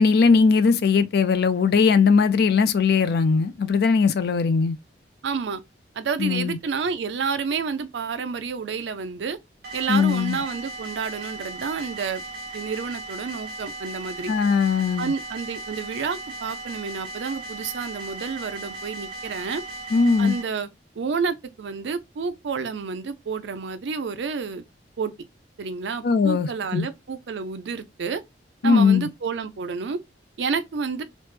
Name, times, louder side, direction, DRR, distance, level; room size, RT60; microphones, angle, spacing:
voice 1, 0.0-4.8 6.2-6.6 9.9-10.4 14.3-15.1 19.9-20.3 26.0-26.9 28.6-29.1, left 5 dB, 60° left, 0.4 m, -19 dB
voice 2, 5.2-5.6 6.0-9.4 9.7-12.2 12.5-14.3 15.0-19.6 20.2-20.7 21.0-24.6 25.0-25.1 25.6-28.2 28.6-30.0 30.4-31.0, right 5 dB, 80° right, 0.5 m, -29 dB
sound 1, 9.6-20.4, right 2 dB, 55° right, 0.9 m, -37 dB
3.0 x 2.1 x 3.1 m
head